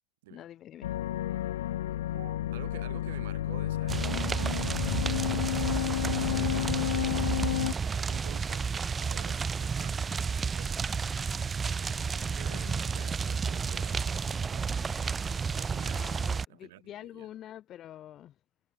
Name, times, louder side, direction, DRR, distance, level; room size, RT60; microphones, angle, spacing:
voice 1, 0.3-0.9 12.5-12.8 15.9-18.3, left 12 dB, 35° left, 0.9 m, -46 dB
sound 1, 0.8-7.7, left 13 dB, 90° left, 0.4 m, -31 dB
voice 2, 2.1-10.9 12.2-14.8 15.5-16.1 16.5-17.3, right 17 dB, 75° right, 6.8 m, -50 dB
sound 2, 3.9-16.5, right 5 dB, 15° right, 0.6 m, -31 dB
supercardioid pair, 135°, 0 cm